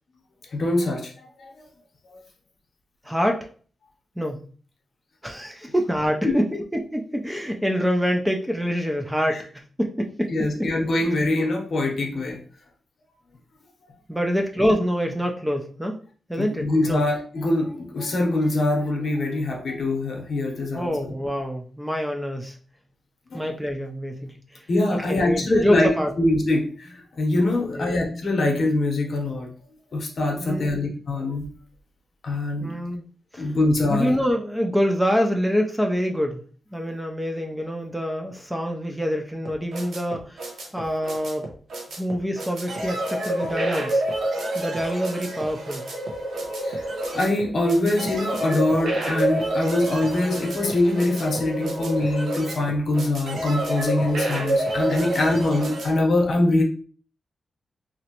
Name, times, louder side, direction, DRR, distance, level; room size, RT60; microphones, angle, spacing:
voice 1, 0.5-1.1 1.4-1.5 2.1-2.2 6.2-6.3 9.3-9.4 10.3-12.4 16.4-20.9 23.3-23.5 24.7-25.9 26.2-29.5 29.9-31.5 32.2-32.7 33.4-34.1 46.6-46.8 47.1-56.6, left 2 dB, 55° left, 1 dB, 0.7 m, -23 dB
voice 2, 3.0-3.5 4.2-4.4 5.2-9.5 9.8-10.7 14.1-16.0 16.3-17.0 20.7-22.6 23.3-26.1 27.7-27.9 30.4-30.8 32.6-33.0 33.3-33.6 33.9-36.4 36.7-40.5 40.7-41.5 42.0-44.0 44.5-45.8, equal, 5° right, 3 dB, 0.3 m, -26 dB
sound 1, 39.4-55.9, right 1 dB, 80° right, 0.7 m, -28 dB
2.9 x 2.5 x 2.8 m, 0.42 s
wide cardioid pair, 145°, 0 cm